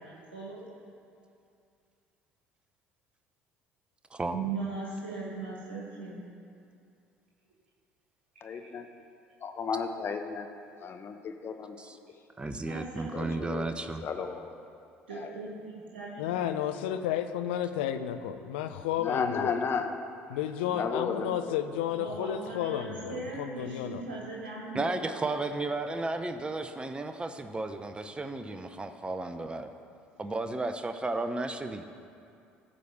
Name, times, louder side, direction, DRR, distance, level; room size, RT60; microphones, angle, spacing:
voice 1, 0.0-0.6 4.3-6.3 8.3-8.7 12.6-13.7 15.1-16.3 22.0-25.3, right 4 dB, 85° right, -4 dB, 1.5 m, -39 dB
voice 2, 8.4-8.9 9.4-10.5 10.8-11.8 13.1-13.7 14.0-14.6 15.1-15.3 19.0-19.9 20.7-21.6, left 5 dB, 45° left, 6 dB, 1.0 m, -33 dB
voice 3, 12.4-14.0 24.7-29.7 30.2-31.8, right 2 dB, 15° right, 8 dB, 0.7 m, -33 dB
voice 4, 16.2-19.6 20.3-24.0, left 10 dB, 75° left, 9 dB, 0.5 m, -32 dB
15.0 x 5.0 x 6.8 m, 2.5 s
hypercardioid pair, 60°, 6 cm